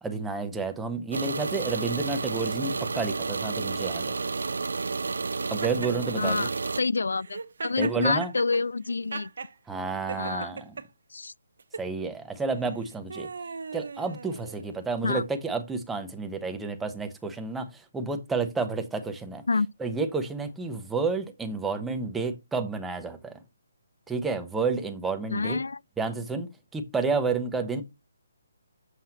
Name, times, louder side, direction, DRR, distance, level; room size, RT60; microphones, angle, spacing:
voice 1, 0.0-4.1 5.5-6.5 7.8-8.3 9.7-10.8 11.8-13.3 13.7-19.4 19.8-23.4 24.1-25.6 26.0-27.8, right 4 dB, 5° right, 0.8 m, -30 dB
sound 1, 1.1-6.8, right 4 dB, 80° right, 0.3 m, -31 dB
Laughter, 5.6-6.4 7.2-9.5 10.1-10.9 11.6-11.9 12.6-14.8, right 4 dB, 65° right, 0.8 m, -38 dB
voice 2, 6.2-6.5 6.8-9.3 10.2-10.5 11.1-11.3 15.0-15.2 19.5-19.7 25.3-25.8, left 4 dB, 85° left, 0.3 m, -27 dB
7.6 x 5.5 x 2.9 m
hypercardioid pair, 165°, 0 cm